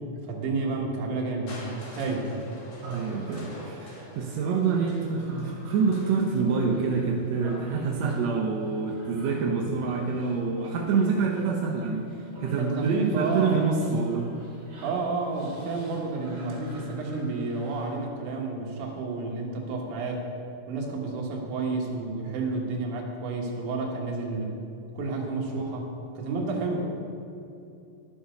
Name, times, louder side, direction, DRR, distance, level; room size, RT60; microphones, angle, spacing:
voice 1, 0.2-2.4 12.6-13.6 14.8-20.3 20.7-24.6 24.9-25.9 26.2-26.8, right 3 dB, 65° right, -1 dB, 2.6 m, -30 dB
Crushing, 1.5-7.4 8.3-8.4, left 1 dB, 55° left, 3.0 m, -47 dB
Human voice, 2.8-18.0, right 1 dB, 40° right, 3.0 m, -49 dB
voice 2, 2.8-14.3, right 5 dB, 85° right, 0 dB, 1.5 m, -27 dB
11.5 x 7.1 x 5.1 m, 2.7 s
omnidirectional pair, 4.1 m